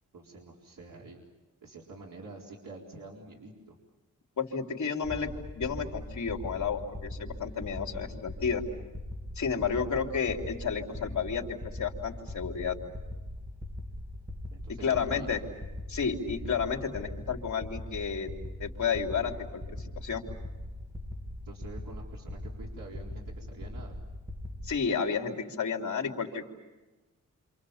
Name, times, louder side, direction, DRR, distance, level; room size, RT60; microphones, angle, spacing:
voice 1, 0.1-1.3 1.6-3.8 14.5-15.3 21.4-23.9, right 3 dB, 90° right, -2 dB, 4.2 m, -47 dB
voice 2, 4.4-5.3 5.6-8.6 9.4-12.8 14.8-15.4 15.9-18.3 18.6-20.2 24.6-26.5, left 6 dB, 60° left, 2 dB, 3.3 m, -31 dB
sound 1, 5.0-24.8, left 1 dB, 5° right, 2.0 m, -41 dB
29.0 x 27.5 x 7.2 m, 1.2 s
wide cardioid pair, 160°, 32 cm